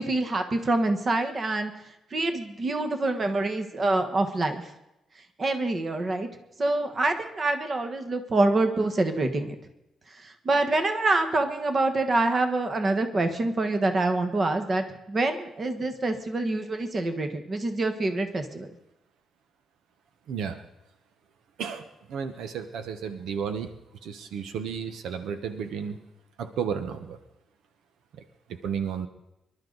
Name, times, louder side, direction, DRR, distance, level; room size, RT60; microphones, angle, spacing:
voice 1, 0.0-1.7 2.1-4.7 5.4-6.3 6.6-9.6 10.2-18.7, right 2 dB, 30° right, 7 dB, 1.4 m, -26 dB
voice 2, 20.3-20.6 21.6-23.7 24.0-26.0 26.4-27.2 28.1-29.1, right 7 dB, 85° right, 9 dB, 1.2 m, -33 dB
24.5 x 12.0 x 4.0 m, 0.91 s
cardioid pair, 155°, 0 cm